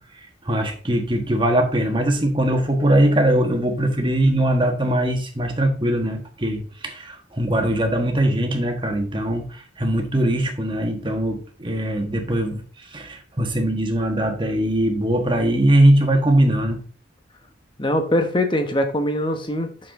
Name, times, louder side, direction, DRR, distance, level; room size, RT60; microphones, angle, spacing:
voice 1, 0.4-12.6 12.9-16.8, right 1 dB, 25° right, 4 dB, 1.4 m, -21 dB
voice 2, 17.8-19.9, left 1 dB, 25° left, 6 dB, 1.1 m, -22 dB
6.7 x 6.5 x 3.7 m, 0.40 s
head